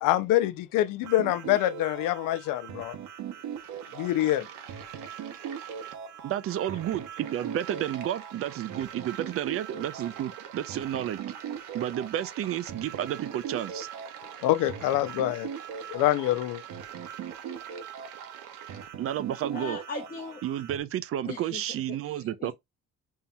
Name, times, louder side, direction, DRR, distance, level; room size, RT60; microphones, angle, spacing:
voice 1, 0.0-3.0 3.9-4.5 14.4-15.5 15.9-16.6, left 14 dB, 80° left, 0.5 m, -25 dB
sound 1, 1.0-20.8, right 8 dB, 65° right, 0.9 m, -41 dB
sound 2, 3.3-18.9, right 8 dB, 90° right, 1.0 m, -47 dB
voice 2, 6.2-7.0 7.3-11.2 11.7-13.9 19.0-19.8 20.4-22.5, right 11 dB, 45° right, 0.5 m, -31 dB
voice 3, 19.5-20.4 21.2-21.6 21.9-22.5, left 3 dB, 25° left, 0.9 m, -39 dB
5.5 x 2.8 x 2.3 m
cardioid pair, 140°, 32 cm